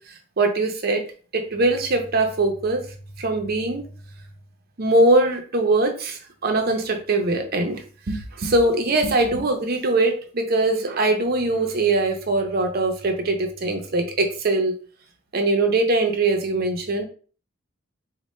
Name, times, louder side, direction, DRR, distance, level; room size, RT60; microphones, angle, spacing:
voice 1, 0.1-1.0 1.3-2.9 3.2-3.9 4.8-14.7 15.3-17.0, right 2 dB, 50° right, 5 dB, 0.6 m, -22 dB
4.1 x 2.1 x 3.1 m, 0.40 s
head